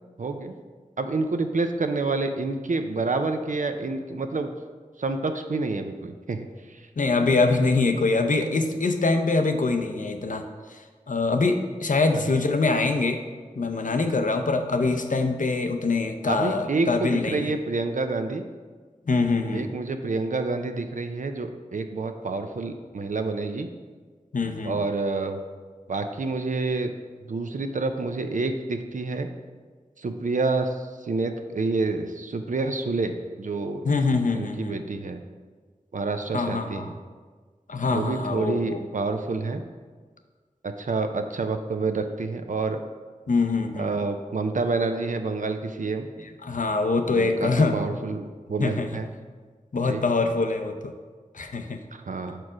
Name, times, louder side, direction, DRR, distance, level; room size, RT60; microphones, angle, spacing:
voice 1, 0.2-0.6 1.0-4.5 5.0-6.9 12.1-12.2 16.3-18.4 19.5-23.7 24.6-25.4 25.9-26.9 27.3-29.3 30.0-33.9 34.3-35.2 35.9-36.9 37.9-39.6 40.6-42.8 43.8-46.1 47.1-49.1 49.8-50.0 51.9-52.4, right 3 dB, 65° right, 7 dB, 0.5 m, -28 dB
voice 2, 7.0-10.4 10.7-10.8 11.1-13.2 13.5-17.5 19.1-19.7 24.3-24.8 33.8-34.8 36.3-36.9 37.7-38.8 43.3-43.9 46.4-47.8 48.6-49.0 49.7-50.9 51.3-51.8, left 3 dB, 70° left, 6 dB, 0.6 m, -24 dB
4.8 x 4.5 x 6.0 m, 1.5 s
wide cardioid pair, 45°, 14 cm